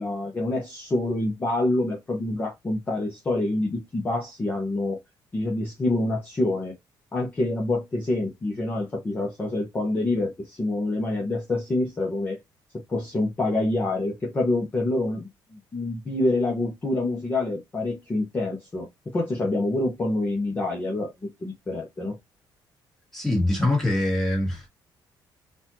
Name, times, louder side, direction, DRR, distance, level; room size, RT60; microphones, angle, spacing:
voice 1, 0.0-5.0 5.3-6.7 7.1-12.4 12.9-18.9 19.1-21.1 21.4-22.2, left 2 dB, 20° left, 1.0 m, -26 dB
voice 2, 23.1-24.7, left 1 dB, 5° left, 1.7 m, -23 dB
4.1 x 2.6 x 2.8 m
cardioid pair, 165°, 8 cm